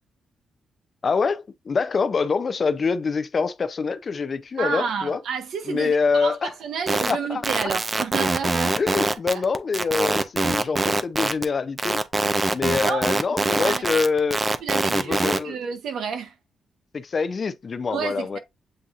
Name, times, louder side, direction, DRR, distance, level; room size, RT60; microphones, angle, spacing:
voice 1, 1.0-5.2 5.7-6.5 7.1-7.4 8.8-12.0 12.5-14.4 14.9-15.6 16.9-18.4, left 5 dB, 40° left, 0.4 m, -25 dB
voice 2, 4.6-9.4 12.6-13.0 13.4-13.8 14.6-16.4 17.9-18.4, right 6 dB, 85° right, 0.9 m, -30 dB
sound 1, 6.9-7.1 7.4-11.4 11.8-15.4, right 2 dB, 25° right, 0.4 m, -23 dB
7.6 x 2.7 x 2.4 m
cardioid pair, 130°, 0 cm